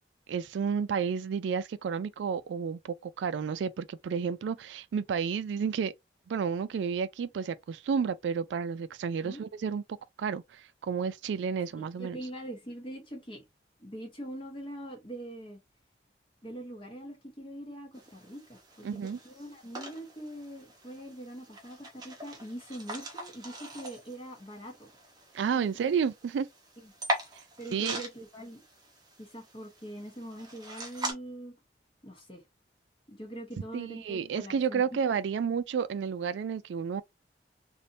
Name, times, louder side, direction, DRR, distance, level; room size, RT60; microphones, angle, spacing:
voice 1, 0.3-5.9 6.3-9.8 10.2-12.2 18.8-19.2 25.3-26.5 27.7-28.0 33.7-37.0, right 6 dB, 85° right, 0.3 m, -31 dB
voice 2, 11.8-13.4 13.8-15.6 16.4-18.9 19.2-24.9 25.5-25.7 27.6-28.6 29.2-31.6 32.0-32.4 33.1-35.0, right 1 dB, 30° left, 1.0 m, -43 dB
sound 1, 17.9-31.1, right 1 dB, 20° right, 0.8 m, -41 dB
3.4 x 2.6 x 2.6 m
head